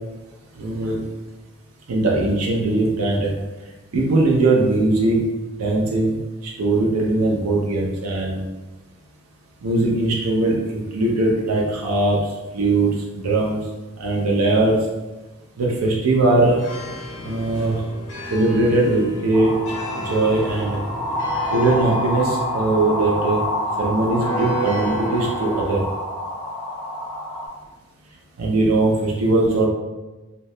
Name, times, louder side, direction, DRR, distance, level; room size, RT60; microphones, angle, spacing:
voice 1, 0.6-1.0 1.9-3.3 3.9-5.2 5.6-8.5 9.6-12.2 12.5-13.6 14.0-14.8 15.6-16.6 17.2-17.8 18.3-19.5 19.9-20.8 21.5-23.4 23.8-25.8 28.4-29.7, right 2 dB, 85° right, -2 dB, 0.5 m, -20 dB
sound 1, 16.4-25.8, right 1 dB, 55° left, 0.6 m, -34 dB
sound 2, 19.3-27.5, left 1 dB, 10° left, 0.3 m, -27 dB
2.7 x 2.2 x 3.1 m, 1.1 s
head